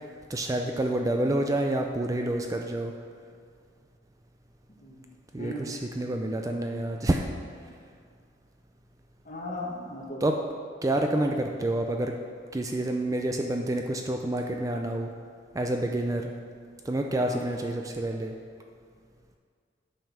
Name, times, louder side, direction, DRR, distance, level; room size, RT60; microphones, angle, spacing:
voice 1, 0.3-2.9 5.3-7.2 10.2-10.4 10.8-12.2 12.5-15.1 15.5-16.3 16.8-18.4, right 1 dB, 20° right, 3 dB, 0.4 m, -28 dB
voice 2, 5.4-5.7 9.3-10.2 17.2-17.4, left 1 dB, 45° left, -3 dB, 1.7 m, -37 dB
9.1 x 5.3 x 6.0 m, 2.1 s
head